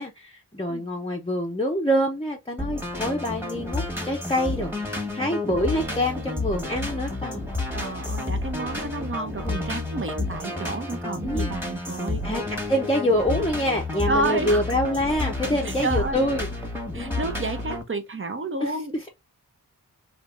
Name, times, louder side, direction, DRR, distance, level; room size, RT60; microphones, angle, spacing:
voice 1, 0.0-7.5 9.4-9.6 11.2-11.6 12.2-16.5 16.9-17.2 18.6-19.1, equal, 15° left, 0.7 m, -26 dB
sound 1, 2.6-17.8, left 2 dB, 5° right, 1.2 m, -30 dB
voice 2, 7.7-12.2 14.1-14.6 15.6-16.2 16.9-19.1, right 2 dB, 30° right, 0.7 m, -30 dB
3.4 x 2.6 x 2.5 m
wide cardioid pair, 60°, 40 cm